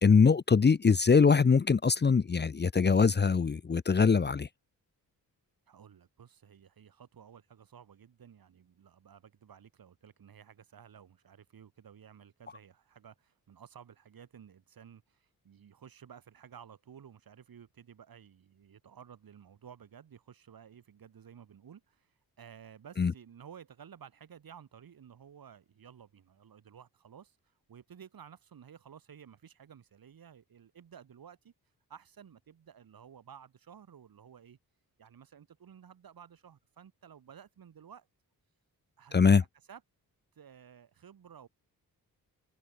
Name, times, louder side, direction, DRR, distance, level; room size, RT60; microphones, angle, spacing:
voice 1, 0.0-4.5 23.0-23.1 39.1-39.4, left 5 dB, 30° left, 0.8 m, -23 dB
voice 2, 5.7-31.5 31.9-34.6 35.0-38.1 39.0-39.3 39.7-39.8 40.3-41.5, right 8 dB, 65° right, 4.9 m, -54 dB
wide cardioid pair, 140°, 37 cm